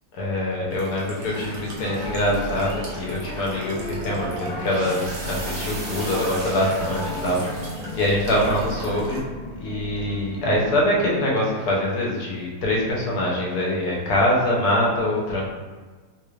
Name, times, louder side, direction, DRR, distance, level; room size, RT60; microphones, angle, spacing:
voice 1, 0.1-7.6 7.9-9.2 9.6-15.4, left 1 dB, 80° left, -3 dB, 1.4 m, -24 dB
Walk footsteps / Chirp tweet / Stream, 0.7-9.2, right 1 dB, 55° right, 1.0 m, -39 dB
sound 1, 1.2-10.8, left 1 dB, 50° left, 0.6 m, -37 dB
sound 2, 1.8-9.1, right 1 dB, 90° right, 1.4 m, -36 dB
3.7 x 2.4 x 3.2 m, 1.4 s
omnidirectional pair, 1.6 m